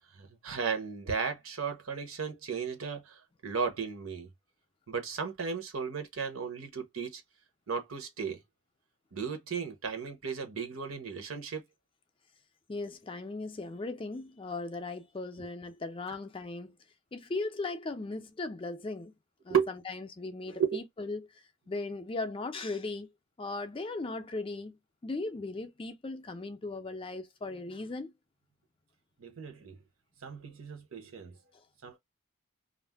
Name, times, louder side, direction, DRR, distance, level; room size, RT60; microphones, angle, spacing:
voice 1, 0.2-4.3 4.9-7.2 7.7-8.4 9.1-11.6 19.5-19.7 20.5-20.8 29.2-29.8 30.2-31.3 31.8-32.0, right 6 dB, 80° right, 0.8 m, -34 dB
voice 2, 12.7-16.8 17.1-19.1 19.4-23.1 23.4-28.1 31.5-31.6, left 3 dB, 25° left, 0.4 m, -38 dB
2.5 x 2.0 x 3.3 m
head